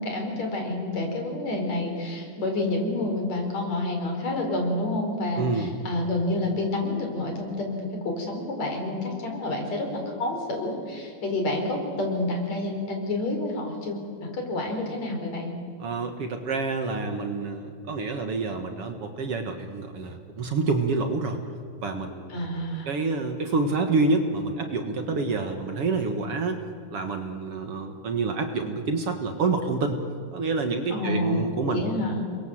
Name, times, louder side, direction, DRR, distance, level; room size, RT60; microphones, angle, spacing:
voice 1, 0.0-15.5 22.3-22.9 30.9-32.3, left 2 dB, 60° left, 3 dB, 5.8 m, -29 dB
voice 2, 5.4-5.7 15.8-21.4 21.8-22.4 22.9-26.6 26.9-30.0 30.3-31.9, right 3 dB, 55° right, 6 dB, 2.4 m, -27 dB
29.5 x 23.0 x 7.9 m, 2.4 s
omnidirectional pair, 3.5 m